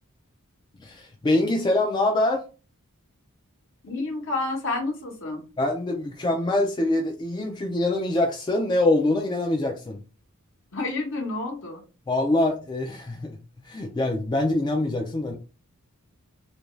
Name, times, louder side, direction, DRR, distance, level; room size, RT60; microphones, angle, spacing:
voice 1, 0.8-2.4 5.6-10.0 12.1-13.4 13.6-15.3, left 2 dB, 20° left, 2 dB, 0.4 m, -24 dB
voice 2, 3.8-5.4 10.7-11.8, left 2 dB, 60° left, 2 dB, 0.9 m, -29 dB
2.5 x 2.2 x 3.0 m, 0.32 s
head